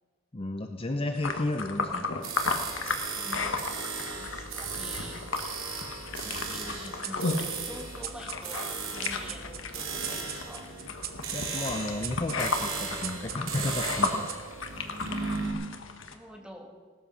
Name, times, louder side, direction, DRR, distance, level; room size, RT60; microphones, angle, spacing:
voice 1, 0.3-2.3 6.3-6.8 11.3-14.3, left 2 dB, 30° left, 6 dB, 0.7 m, -33 dB
sound 1, 1.1-16.1, left 4 dB, 70° left, 1.5 m, -35 dB
sound 2, 2.2-15.5, right 4 dB, 80° right, 3.2 m, -37 dB
voice 2, 3.1-3.7 4.1-5.3 6.0-10.7 15.0-15.3 16.0-16.7, equal, 5° right, 1 dB, 2.2 m, -46 dB
sound 3, 7.0-14.8, right 10 dB, 50° right, 1.0 m, -42 dB
17.5 x 13.0 x 5.6 m, 1.5 s
head